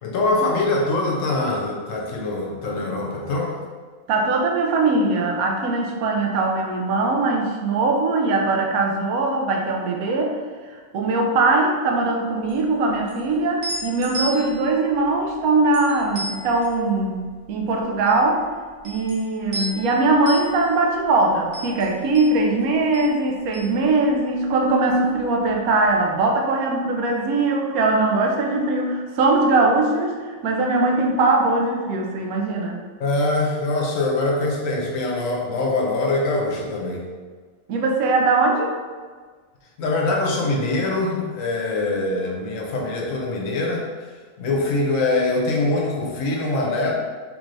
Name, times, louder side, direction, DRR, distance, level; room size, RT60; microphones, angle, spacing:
voice 1, 0.0-3.6 33.0-37.1 39.8-43.8 44.4-46.9, left 2 dB, 70° left, -1 dB, 1.0 m, -23 dB
voice 2, 4.1-10.4 10.7-17.2 17.5-18.4 18.8-32.8 37.7-38.7, right 3 dB, 80° right, 1 dB, 1.0 m, -21 dB
sound 1, 12.4-24.7 24.9-26.0, right 1 dB, 45° right, 0.7 m, -35 dB
3.4 x 3.1 x 2.6 m, 1.5 s
omnidirectional pair, 1.5 m